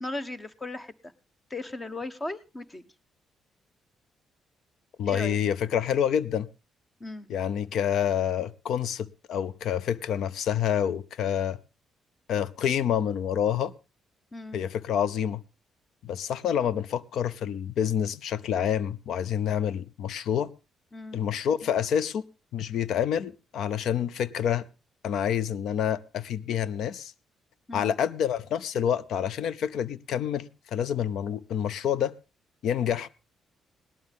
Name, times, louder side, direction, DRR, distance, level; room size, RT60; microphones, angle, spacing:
voice 1, 0.0-1.1 1.5-2.9 5.0-5.4 7.0-7.3 14.3-14.6 20.9-21.2 27.7-27.9, left 2 dB, 25° left, 1.2 m, -37 dB
voice 2, 5.0-6.5 7.3-11.6 12.3-13.7 14.5-15.4 16.0-20.5 21.1-22.2 22.5-24.7 25.0-27.1 27.7-32.1 32.6-33.1, left 9 dB, 75° left, 0.7 m, -28 dB
18.0 x 12.0 x 3.6 m
cardioid pair, 90°, 0 cm